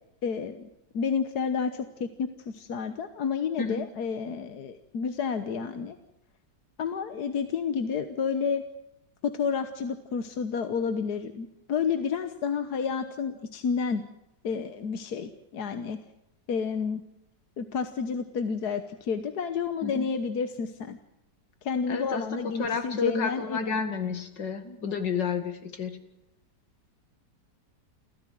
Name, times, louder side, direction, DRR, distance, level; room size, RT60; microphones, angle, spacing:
voice 1, 0.2-0.7 0.9-6.0 6.8-8.6 9.2-14.0 14.4-16.0 16.5-17.0 17.6-21.0 21.6-23.8, left 6 dB, 65° left, 9 dB, 1.6 m, -30 dB
voice 2, 21.9-26.0, left 5 dB, 85° left, 8 dB, 2.7 m, -31 dB
28.5 x 14.5 x 7.7 m, 0.86 s
omnidirectional pair, 1.8 m